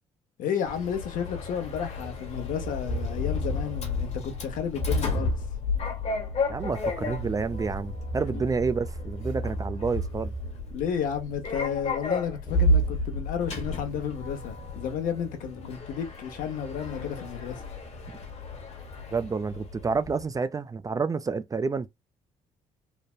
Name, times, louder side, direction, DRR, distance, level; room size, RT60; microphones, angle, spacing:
voice 1, 0.4-5.3 8.3-8.4 10.7-17.6, left 8 dB, 75° left, 0.8 m, -32 dB
Sliding door, 0.7-20.3, left 1 dB, 50° left, 1.1 m, -31 dB
voice 2, 6.5-10.3 19.1-21.9, right 4 dB, 25° right, 0.4 m, -29 dB
3.2 x 2.0 x 2.3 m
supercardioid pair, 65°, 14 cm